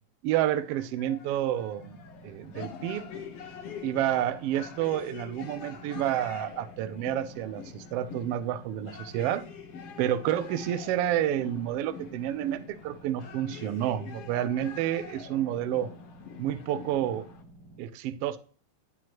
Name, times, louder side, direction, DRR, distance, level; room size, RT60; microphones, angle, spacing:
voice 1, 0.2-3.1 3.8-9.4 10.0-15.9 16.4-17.3 17.8-18.4, right 11 dB, 75° right, 12 dB, 1.4 m, -29 dB
sound 1, 0.5-17.4, left 7 dB, 65° left, 1.8 m, -45 dB
sound 2, 1.8-17.8, right 1 dB, 15° left, 1.0 m, -52 dB
11.0 x 6.1 x 2.9 m, 0.41 s
omnidirectional pair, 3.3 m